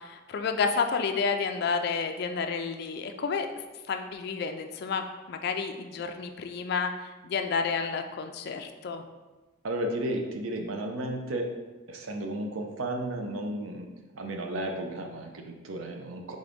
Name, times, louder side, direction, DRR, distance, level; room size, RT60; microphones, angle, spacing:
voice 1, 0.0-3.5 3.9-9.0, left 5 dB, 50° left, 6 dB, 0.3 m, -30 dB
voice 2, 9.6-11.5 11.9-13.9 14.1-16.4, right 1 dB, 80° right, 3 dB, 0.6 m, -33 dB
3.8 x 3.8 x 3.5 m, 1.2 s
head